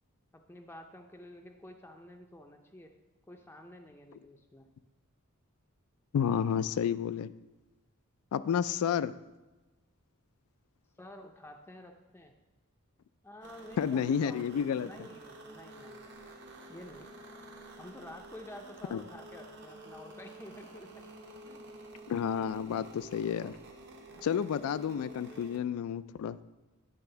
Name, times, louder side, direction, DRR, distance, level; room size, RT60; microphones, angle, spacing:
voice 1, 0.3-2.9 3.3-4.7 11.0-12.3 13.2-14.5 14.8-16.2 16.7-17.1 17.8-21.1 21.5-21.6 24.1-24.3, left 1 dB, 10° left, 3 dB, 0.5 m, -50 dB
voice 2, 6.1-7.3 8.3-9.1 13.8-14.9 18.9-19.0 22.1-23.6 24.2-26.4, left 8 dB, 85° left, 16 dB, 0.3 m, -30 dB
sound 1, 13.4-25.6, right 1 dB, 55° right, 1.0 m, -50 dB
9.7 x 3.5 x 6.7 m, 1.1 s
head